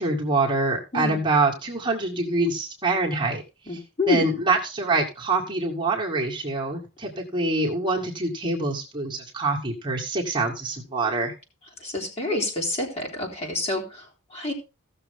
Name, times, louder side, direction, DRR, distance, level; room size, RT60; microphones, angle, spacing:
voice 1, 0.0-3.4 4.1-11.3, right 3 dB, 20° right, -3 dB, 2.0 m, -25 dB
voice 2, 3.7-4.4 11.8-14.5, left 2 dB, 30° left, 0 dB, 3.2 m, -28 dB
16.0 x 6.8 x 3.6 m, 0.28 s
head